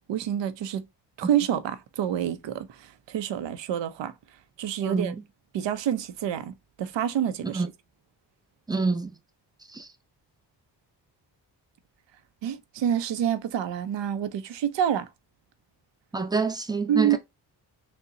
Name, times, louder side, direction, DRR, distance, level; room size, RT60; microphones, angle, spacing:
voice 1, 0.1-0.8 1.2-4.1 4.6-5.2 5.5-7.6 12.4-15.1 16.9-17.2, right 10 dB, 85° right, 0.6 m, -27 dB
voice 2, 4.8-5.1 7.5-7.7 8.7-9.1 9.7-9.9 16.1-17.2, right 4 dB, 10° right, 0.7 m, -26 dB
3.7 x 2.1 x 2.7 m
cardioid pair, 65°, 42 cm